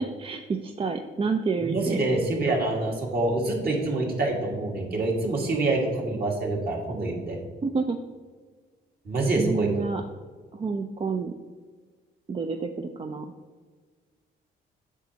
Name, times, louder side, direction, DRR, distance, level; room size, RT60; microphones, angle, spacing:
voice 1, 0.0-2.1 7.6-8.0 9.4-10.0 10.5-11.3 12.3-13.3, right 4 dB, 25° right, 6 dB, 0.4 m, -29 dB
voice 2, 1.6-7.4 9.1-9.7, right 2 dB, 50° right, -1 dB, 1.9 m, -26 dB
8.1 x 6.0 x 2.8 m, 1.5 s
cardioid pair, 90°, 20 cm